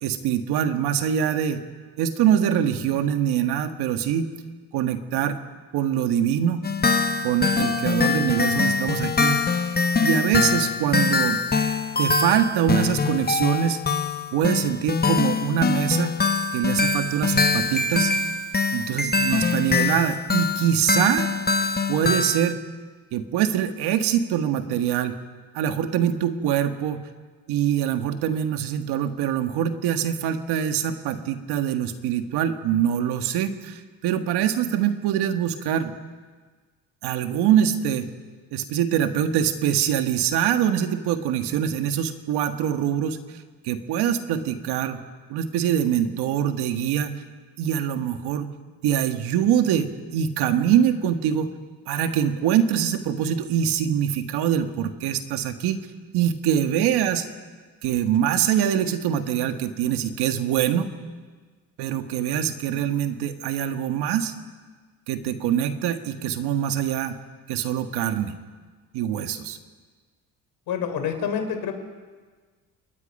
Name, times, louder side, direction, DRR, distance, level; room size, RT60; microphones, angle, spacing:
voice 1, 0.0-1.6 2.0-4.3 4.7-5.4 5.7-6.6 7.2-9.4 10.0-11.4 12.0-13.8 14.3-16.1 16.5-18.1 18.7-21.3 21.9-22.6 23.1-25.1 25.5-27.1 27.5-35.9 37.0-38.1 38.5-45.0 45.3-47.2 47.6-48.5 48.8-51.5 51.9-55.8 56.1-57.3 57.8-60.9 61.8-64.3 65.1-67.1 67.5-68.3 68.9-69.6, right 9 dB, 85° right, 8 dB, 1.7 m, -24 dB
sound 1, 6.6-22.5, left 4 dB, 25° left, 1.2 m, -23 dB
voice 2, 70.7-71.7, left 7 dB, 70° left, 6 dB, 3.7 m, -27 dB
28.0 x 21.0 x 5.5 m, 1.4 s
cardioid pair, 90°, 38 cm